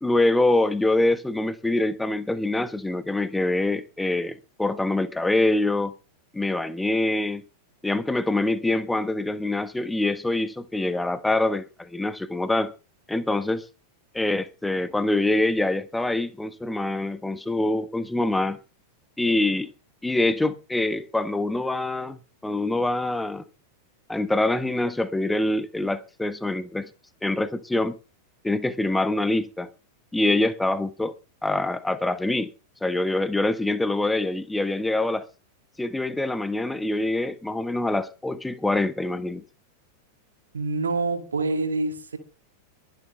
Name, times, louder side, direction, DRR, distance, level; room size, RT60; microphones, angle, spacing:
voice 1, 0.0-5.9 6.3-7.4 7.8-12.7 13.1-13.6 14.1-18.6 19.2-19.7 20.0-22.2 22.4-23.4 24.1-26.9 27.2-27.9 28.4-29.7 30.1-31.1 31.4-32.5 32.8-35.3 35.8-39.4, left 2 dB, 5° left, 1.4 m, -25 dB
voice 2, 40.5-42.2, right 3 dB, 75° right, 2.5 m, -26 dB
22.0 x 11.5 x 3.5 m
figure-of-eight pair, 90°, 0 cm